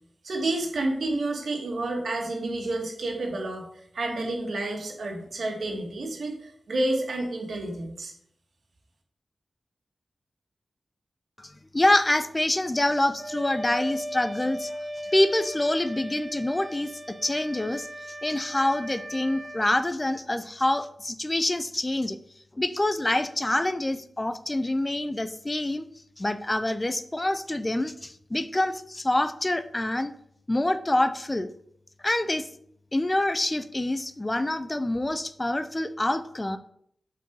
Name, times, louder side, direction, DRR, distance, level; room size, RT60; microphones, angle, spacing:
voice 1, 0.2-3.7 3.9-6.4 6.7-8.1, right 2 dB, 80° right, 1 dB, 1.9 m, -29 dB
voice 2, 11.4-14.8 15.1-16.9 17.2-17.9 18.2-22.2 22.6-25.8 26.2-30.1 30.5-31.5 32.0-32.5 32.9-36.6, left 1 dB, 20° left, 11 dB, 0.5 m, -26 dB
Wind instrument woodwind instrument, 13.2-19.7, equal, 20° right, 2.0 m, -37 dB
7.5 x 4.7 x 4.7 m, 0.68 s
cardioid pair, 70°, 0 cm